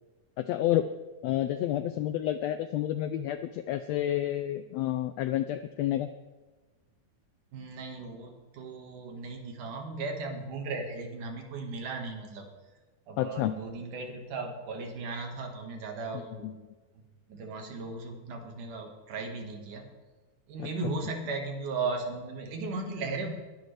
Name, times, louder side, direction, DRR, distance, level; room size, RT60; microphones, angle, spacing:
voice 1, 0.4-0.9 1.2-6.1 13.2-13.5 16.4-16.5 20.6-20.7, left 12 dB, 90° left, 10 dB, 1.5 m, -29 dB
voice 2, 7.5-12.5 13.1-16.6 16.9-19.9 20.5-23.3, right 3 dB, 80° right, 3 dB, 3.3 m, -36 dB
21.5 x 10.5 x 3.4 m, 1.2 s
omnidirectional pair, 3.6 m